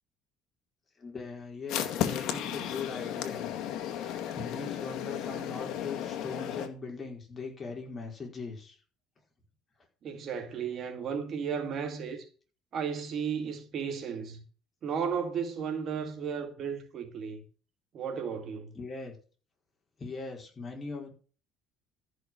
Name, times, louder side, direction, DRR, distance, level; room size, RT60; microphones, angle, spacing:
voice 1, 1.0-3.5 3.9-8.8 18.7-19.1 20.0-21.1, left 4 dB, 25° left, 4.6 m, -40 dB
sound 1, 1.7-6.7, left 10 dB, 65° left, 2.0 m, -34 dB
voice 2, 10.0-12.3 12.7-14.4 14.8-17.4 17.9-18.7, right 7 dB, 45° right, 2.1 m, -34 dB
13.5 x 6.2 x 6.3 m
cardioid pair, 120°, 0 cm